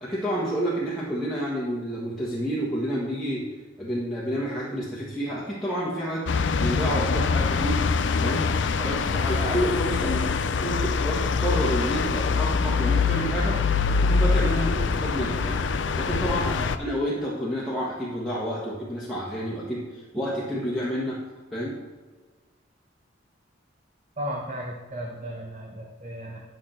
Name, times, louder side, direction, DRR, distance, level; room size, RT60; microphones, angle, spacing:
voice 1, 0.0-3.5 3.8-7.8 8.2-8.4 8.8-10.2 10.6-13.6 14.0-21.2 21.5-21.8, equal, ahead, -8 dB, 1.6 m, -29 dB
sound 1, 6.3-16.8, left 5 dB, 65° left, 0.5 m, -24 dB
voice 2, 24.2-26.4, equal, 35° right, 0 dB, 1.1 m, -35 dB
11.0 x 6.6 x 4.4 m, 1.4 s
head